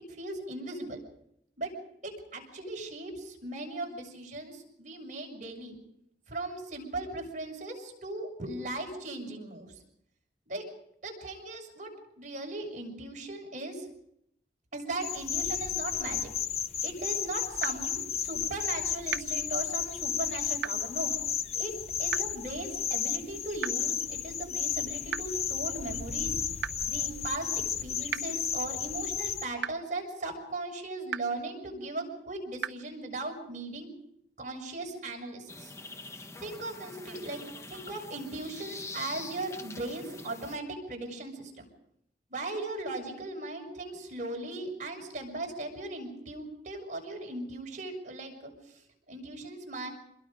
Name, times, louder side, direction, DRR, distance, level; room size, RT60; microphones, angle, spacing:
voice 1, 0.1-1.0 1.6-1.7 2.0-5.8 6.3-9.8 10.5-10.7 11.0-13.9 14.7-16.3 16.8-21.1 21.5-26.3 26.9-33.9 34.4-35.7 36.4-37.4 37.7-41.6 42.3-48.8 49.1-49.9, right 2 dB, 45° right, 1 dB, 7.1 m, -38 dB
sound 1, 15.0-29.5, left 8 dB, 35° left, 0.8 m, -33 dB
sound 2, 17.6-17.7 19.1-19.2 20.6-20.7 22.1-22.2 23.6-23.7 25.1-25.2 26.6-26.7 28.1-28.2 29.6-29.7 31.1-31.2 32.6-32.7, right 8 dB, 85° right, 0.8 m, -32 dB
sound 3, 35.5-40.6, left 3 dB, 15° left, 1.1 m, -44 dB
27.5 x 21.5 x 5.3 m, 0.76 s
head